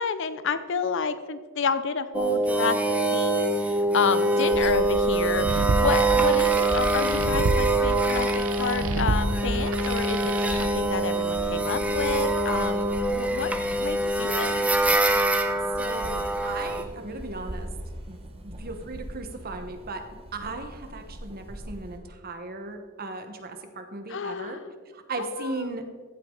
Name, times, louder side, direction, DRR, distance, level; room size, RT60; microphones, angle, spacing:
voice 1, 0.0-2.8 3.1-13.5 13.8-14.5 24.1-24.6 25.2-25.7, left 5 dB, 60° left, 12 dB, 0.6 m, -30 dB
sound 1, 2.1-16.8, right 2 dB, 5° right, 0.8 m, -24 dB
sound 2, 4.4-22.0, equal, 30° right, 1.3 m, -40 dB
sound 3, 5.1-10.7, right 2 dB, 75° right, 0.8 m, -29 dB
voice 2, 15.8-17.7 18.1-18.2 18.4-20.0 20.3-24.6 24.9-25.8, right 3 dB, 45° right, 6 dB, 1.2 m, -37 dB
14.0 x 8.3 x 3.8 m, 1.5 s
head